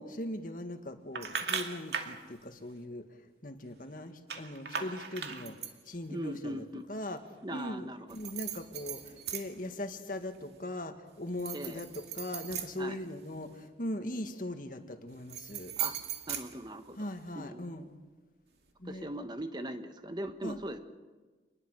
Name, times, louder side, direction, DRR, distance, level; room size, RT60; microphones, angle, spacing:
voice 1, 0.0-3.1 3.4-7.2 7.5-11.9 12.1-15.7 17.0-17.9 18.8-19.1 20.4-20.6, left 1 dB, 50° left, 7 dB, 1.9 m, -40 dB
sound 1, 1.2-2.2 4.3-5.9 8.1-9.7 10.1-10.6 11.3-13.5 15.1-17.2, right 8 dB, 70° right, 2.4 m, -39 dB
voice 2, 6.1-6.8 7.4-8.1 11.5-11.8 12.8-13.0 15.8-16.0 16.3-17.0 17.3-17.9 18.8-20.8, right 1 dB, 25° right, 8 dB, 1.2 m, -40 dB
27.0 x 20.5 x 6.6 m, 1.3 s
head